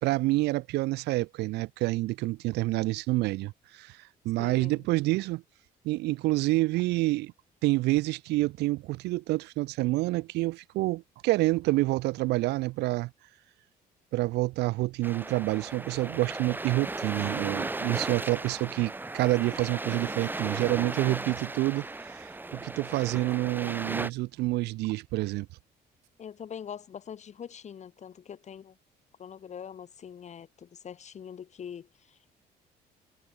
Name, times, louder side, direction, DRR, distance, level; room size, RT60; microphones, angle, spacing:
voice 1, 0.0-4.0 4.2-5.4 5.8-7.3 7.6-13.1 14.1-21.9 22.1-25.5, right 19 dB, 80° right, 0.6 m, -28 dB
voice 2, 4.4-4.8 26.2-28.8 29.2-32.3, left 8 dB, 45° left, 2.0 m, -43 dB
sound 1, 15.0-24.1, right 2 dB, 10° right, 1.1 m, -36 dB
cardioid pair, 110°, 17 cm